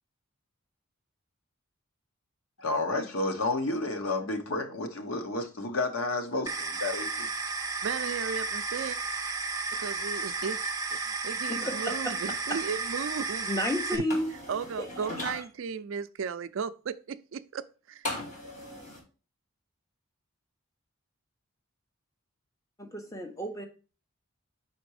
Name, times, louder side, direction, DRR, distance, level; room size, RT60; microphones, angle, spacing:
voice 1, 2.6-7.3, left 2 dB, 75° left, 1.1 m, -31 dB
sound 1, 6.5-14.0, right 4 dB, 15° right, 0.6 m, -33 dB
voice 2, 7.8-9.0 9.7-10.7 11.0-13.5 13.9-14.0 14.5-18.1, right 6 dB, 60° right, 0.4 m, -35 dB
voice 3, 11.5-12.1 13.5-14.3 22.8-23.7, equal, 15° left, 1.0 m, -31 dB
sound 2, 14.1-15.4 18.0-19.0, left 1 dB, 35° left, 2.4 m, -37 dB
5.9 x 4.3 x 4.8 m
head